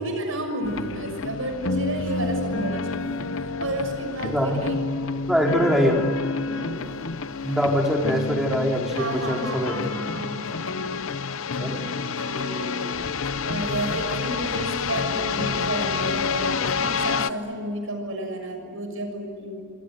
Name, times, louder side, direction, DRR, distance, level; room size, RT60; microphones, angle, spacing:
voice 1, 0.0-4.8 5.5-5.6 6.5-6.8 8.9-10.8 11.6-11.8 12.2-13.0 13.4-19.6, right 1 dB, 65° right, 4 dB, 6.6 m, -31 dB
sound 1, 0.6-17.3, left 4 dB, 65° left, 0.8 m, -29 dB
voice 2, 4.2-4.7 5.3-6.1 7.4-9.7 11.6-11.8, equal, ahead, 0 dB, 3.3 m, -23 dB
28.0 x 26.0 x 8.0 m, 2.4 s
head